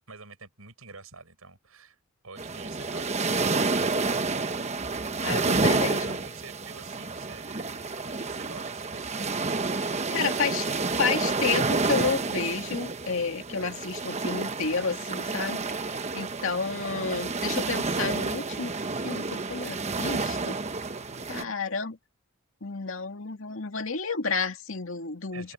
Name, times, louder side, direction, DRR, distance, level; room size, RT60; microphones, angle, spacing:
voice 1, 0.0-2.0 2.2-4.7 5.7-9.6 21.0-21.5 25.3-25.5, right 4 dB, 75° right, 7.4 m, -48 dB
sound 1, 2.4-21.4, right 3 dB, 30° right, 1.0 m, -29 dB
voice 2, 5.2-6.2 10.1-10.7 10.9-18.7 19.0-20.6 21.3-22.0 22.6-25.5, left 5 dB, 65° left, 2.4 m, -31 dB
head